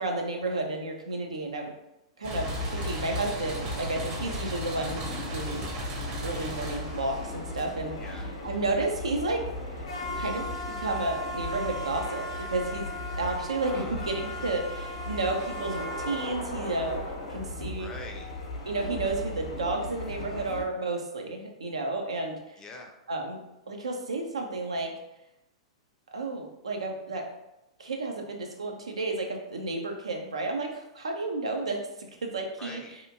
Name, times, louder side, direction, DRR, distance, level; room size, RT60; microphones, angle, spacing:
voice 1, 0.0-1.7 2.2-5.6 6.2-7.9 8.4-10.5 10.8-12.9 13.2-17.0 17.3-17.9 18.7-22.6 23.1-23.4 23.7-24.9 26.1-27.3 27.8-32.8, right 2 dB, 80° right, 2 dB, 0.5 m, -32 dB
sound 1, 2.2-8.1, right 2 dB, 40° right, 0.7 m, -38 dB
sound 2, 2.3-20.6, left 1 dB, 70° left, 0.6 m, -36 dB
voice 2, 7.9-8.3 13.6-14.6 17.8-18.4 22.6-22.9 32.6-32.9, left 3 dB, 20° left, 2 dB, 0.5 m, -44 dB
2.8 x 2.4 x 2.6 m, 0.90 s
hypercardioid pair, 105°, 3 cm